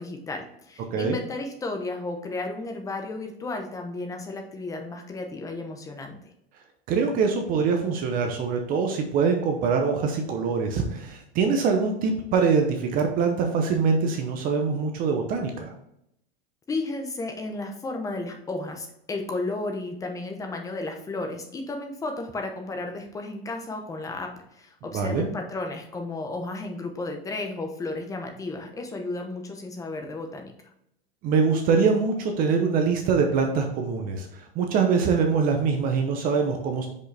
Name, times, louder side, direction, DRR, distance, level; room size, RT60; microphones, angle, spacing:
voice 1, 0.0-6.2 16.7-30.5, left 2 dB, 10° left, 4 dB, 0.8 m, -33 dB
voice 2, 6.9-15.7 24.9-25.2 31.2-36.9, right 5 dB, 30° right, 4 dB, 0.8 m, -24 dB
6.3 x 5.3 x 3.4 m, 0.77 s
supercardioid pair, 150°, 30 cm